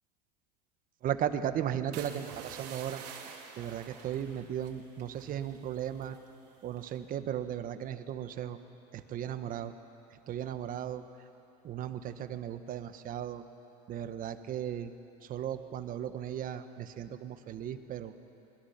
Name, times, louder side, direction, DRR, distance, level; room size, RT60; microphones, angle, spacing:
voice 1, 1.0-3.0 3.6-6.2 6.6-8.6 9.1-9.7 10.3-11.0 11.6-13.4 13.9-14.9 15.2-18.1, right 10 dB, 40° right, 10 dB, 1.3 m, -36 dB
sound 1, 1.9-5.7 5.9-6.3 6.8-7.1, right 7 dB, 80° right, 3.0 m, -48 dB
28.0 x 21.0 x 5.9 m, 2.9 s
supercardioid pair, 105°, 21 cm